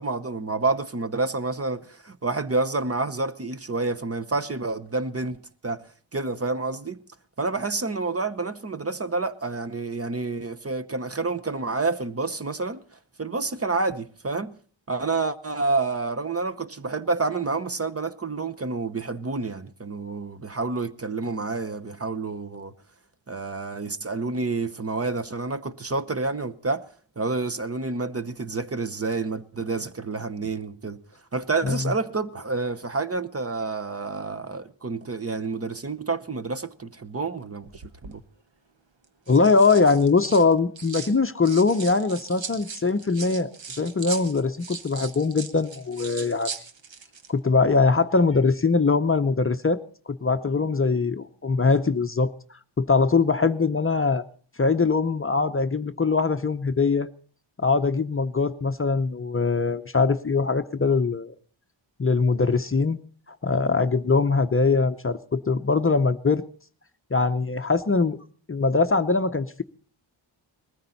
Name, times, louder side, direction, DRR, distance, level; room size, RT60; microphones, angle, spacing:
voice 1, 0.0-5.8 6.1-7.0 7.4-12.8 13.2-14.6 14.9-22.7 23.3-26.8 27.2-31.0 31.3-38.2, right 3 dB, 30° right, 0.9 m, -29 dB
sound 1, 37.7-38.2 39.0-41.1 41.4-47.3 47.6-47.9, right 5 dB, 70° right, 1.5 m, -39 dB
voice 2, 39.3-46.5 47.3-49.8 50.1-52.3 52.8-54.2 54.6-57.1 57.6-61.3 62.0-63.0 63.4-66.4 67.1-68.2 68.5-69.6, left 4 dB, 25° left, 0.7 m, -22 dB
20.0 x 14.0 x 4.1 m
wide cardioid pair, 100°, 47 cm